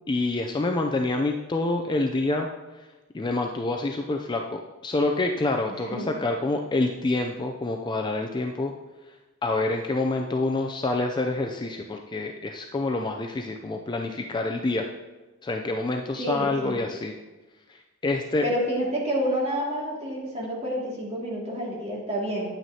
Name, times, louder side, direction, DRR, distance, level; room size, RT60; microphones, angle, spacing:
voice 1, 0.1-2.5 3.1-8.7 9.4-14.9 15.4-17.1 18.0-18.5, left 2 dB, 20° left, 3 dB, 0.4 m, -27 dB
voice 2, 5.7-6.1 16.2-16.8 18.4-22.5, equal, 30° right, -4 dB, 2.2 m, -29 dB
9.0 x 8.9 x 2.8 m, 1.2 s
head